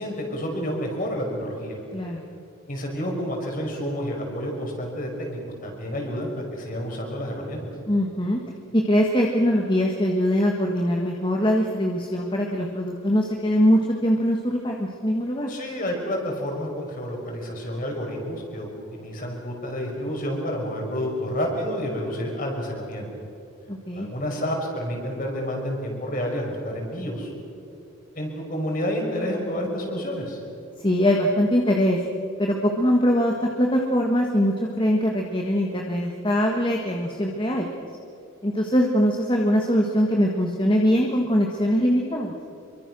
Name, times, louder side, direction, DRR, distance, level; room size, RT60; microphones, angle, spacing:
voice 1, 0.0-1.8 2.7-7.6 15.5-23.1 23.9-27.3 28.1-30.4, equal, 40° left, 0 dB, 5.6 m, -29 dB
voice 2, 7.9-8.4 8.7-15.5 23.7-24.1 30.8-32.0 32.4-37.7 38.4-42.3, equal, 25° left, 1 dB, 1.6 m, -22 dB
27.5 x 23.5 x 6.3 m, 2.6 s
head